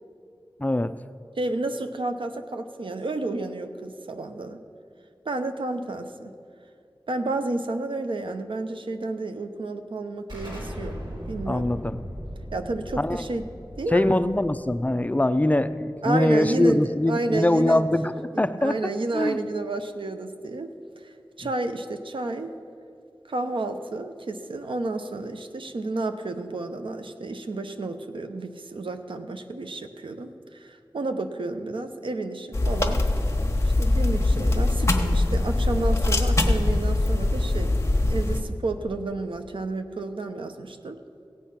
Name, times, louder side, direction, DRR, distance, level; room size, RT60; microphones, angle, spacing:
voice 1, 0.6-0.9 11.5-12.0 13.0-13.2 13.9-18.8 19.1-19.4, left 1 dB, 20° left, 12 dB, 0.4 m, -23 dB
voice 2, 1.4-4.6 5.2-6.3 7.1-11.0 11.3-11.8 12.5-13.5 13.8-14.2 16.0-17.8 18.3-20.7 21.0-22.5 23.3-33.1 33.8-37.8 38.0-41.0, right 2 dB, 90° right, 7 dB, 0.8 m, -31 dB
Explosion, 10.3-15.7, equal, 65° right, 3.9 m, -38 dB
sound 1, 32.5-38.4, left 2 dB, 35° left, 1.2 m, -22 dB
16.0 x 8.4 x 5.9 m, 2.4 s
wide cardioid pair, 65°, 8 cm